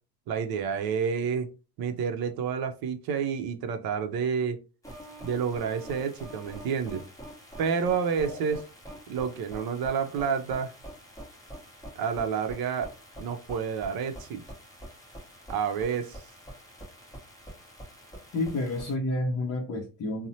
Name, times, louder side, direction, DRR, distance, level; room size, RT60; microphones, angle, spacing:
voice 1, 0.3-1.5 1.8-4.6 5.2-7.1 7.6-8.6 9.1-10.7 12.0-12.9 13.2-14.4 15.5-16.2, right 6 dB, 50° right, 0.6 m, -29 dB
sound 1, 4.8-18.9, equal, 5° left, 0.9 m, -46 dB
voice 2, 18.3-20.3, left 2 dB, 35° left, 0.6 m, -30 dB
2.8 x 2.0 x 2.7 m
supercardioid pair, 90°, 50 cm